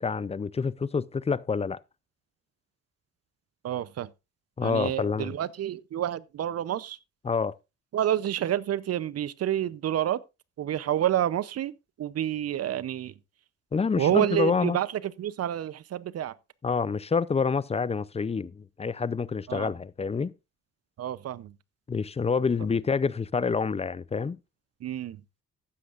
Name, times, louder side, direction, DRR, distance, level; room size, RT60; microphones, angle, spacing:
voice 1, 0.0-1.8 4.6-5.3 7.2-7.6 13.7-14.8 16.6-20.3 21.9-24.4, left 5 dB, 20° left, 0.5 m, -27 dB
voice 2, 3.6-4.1 4.6-7.0 7.9-10.2 10.6-11.7 12.0-13.1 14.0-16.3 19.5-19.7 21.0-21.5 24.8-25.2, right 11 dB, 55° right, 0.7 m, -28 dB
14.0 x 10.0 x 2.5 m
cardioid pair, 90°, 30 cm